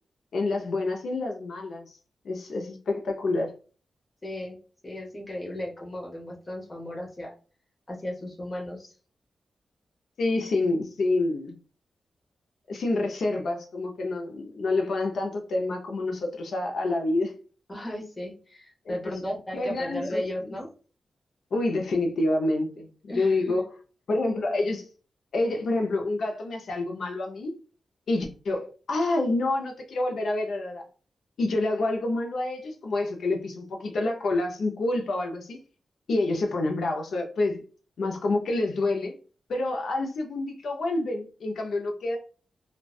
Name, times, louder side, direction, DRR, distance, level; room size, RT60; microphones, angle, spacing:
voice 1, 0.3-1.8 2.2-3.5 10.2-11.5 12.7-17.3 18.9-19.0 19.5-20.2 21.5-23.7 24.1-24.9 25.3-27.5 28.1-30.8 31.4-35.6 36.1-37.6 38.0-39.1 39.5-42.2, left 2 dB, 70° left, 2 dB, 0.4 m, -27 dB
voice 2, 4.2-4.6 4.8-7.3 7.9-8.9 17.7-20.7 23.1-23.6, left 1 dB, 20° left, -3 dB, 0.7 m, -35 dB
2.5 x 2.1 x 2.3 m, 0.38 s
wide cardioid pair, 170°, 0 cm